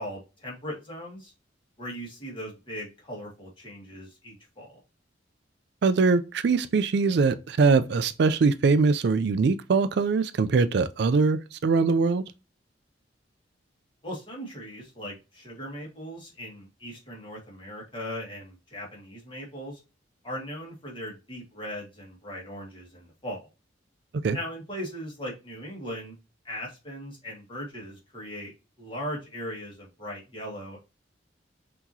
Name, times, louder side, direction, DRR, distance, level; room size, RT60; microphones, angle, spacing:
voice 1, 0.0-1.3 1.8-4.8 14.0-19.8 20.2-23.5 24.3-26.2 26.4-28.5 28.8-30.8, equal, 25° left, 1.8 m, -38 dB
voice 2, 5.8-12.2 24.2-24.4, right 4 dB, 60° right, 0.4 m, -22 dB
5.8 x 2.9 x 2.7 m
head